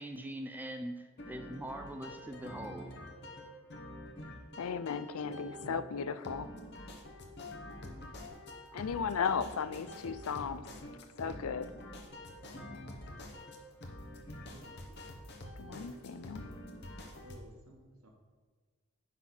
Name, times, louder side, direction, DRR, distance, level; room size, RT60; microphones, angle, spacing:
voice 1, 0.0-2.9, right 1 dB, 10° right, 5 dB, 0.5 m, -42 dB
sound 1, 1.2-17.4, left 1 dB, 50° left, 1.1 m, -47 dB
voice 2, 4.6-6.5 8.7-10.7 11.2-11.7 15.6-16.4, left 6 dB, 80° left, 15 dB, 0.4 m, -35 dB
voice 3, 14.4-15.0 17.2-18.1, right 1 dB, 85° right, 1 dB, 1.6 m, -56 dB
10.0 x 4.0 x 6.0 m, 1.4 s
head